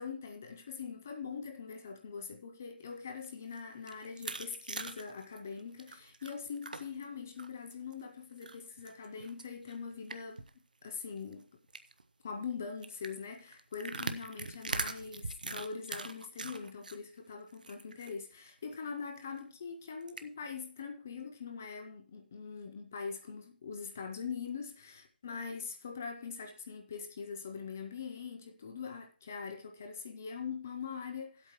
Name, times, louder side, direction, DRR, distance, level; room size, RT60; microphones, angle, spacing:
voice 1, 0.0-10.4 10.8-11.5 12.2-31.5, left 5 dB, 15° left, 0.4 m, -42 dB
sound 1, 3.1-7.0 7.4-7.9 8.4-10.5 10.8-10.9 11.2-11.3 11.7-12.0 12.8-17.0 17.3-18.1 18.5-18.6 18.9-19.0 20.0-20.2, right 3 dB, 55° right, 0.8 m, -41 dB
14.5 x 8.1 x 3.1 m
figure-of-eight pair, 175°, 5 cm